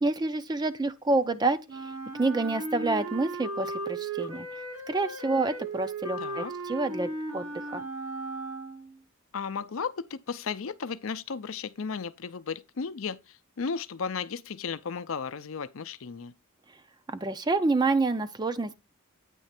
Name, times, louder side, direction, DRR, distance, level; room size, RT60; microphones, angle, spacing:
voice 1, 0.0-1.9 2.2-4.5 4.9-7.8 17.1-18.8, right 3 dB, 20° right, 0.4 m, -28 dB
Wind instrument woodwind instrument, 1.7-9.0, right 2 dB, 90° right, 2.1 m, -36 dB
voice 2, 6.2-6.5 9.3-16.3, left 5 dB, 65° left, 0.5 m, -35 dB
9.1 x 3.1 x 5.9 m
head